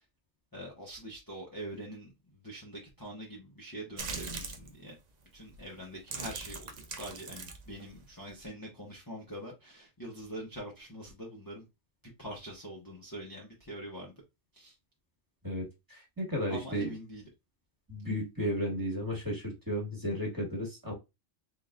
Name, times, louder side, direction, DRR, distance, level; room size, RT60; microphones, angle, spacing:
voice 1, 0.5-4.9 5.3-11.6 12.0-14.1 14.5-14.7 16.5-17.3, right 1 dB, 20° left, 0.8 m, -44 dB
sound 1, 4.0-4.7 5.4-5.6 6.0-8.5, right 4 dB, 45° right, 0.6 m, -41 dB
voice 2, 15.4-16.9 17.9-20.9, equal, 15° right, 1.5 m, -34 dB
3.8 x 3.7 x 2.4 m
omnidirectional pair, 1.3 m